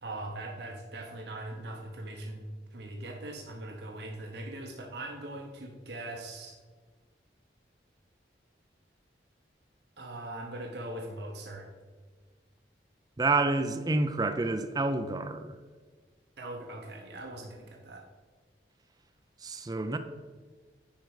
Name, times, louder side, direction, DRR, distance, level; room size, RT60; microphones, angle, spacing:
voice 1, 0.0-6.6 10.0-11.7 16.4-18.0, right 1 dB, 70° right, 1 dB, 0.9 m, -41 dB
voice 2, 13.2-15.5 19.4-20.0, right 3 dB, 20° right, 8 dB, 0.4 m, -28 dB
9.2 x 5.1 x 4.7 m, 1.5 s
head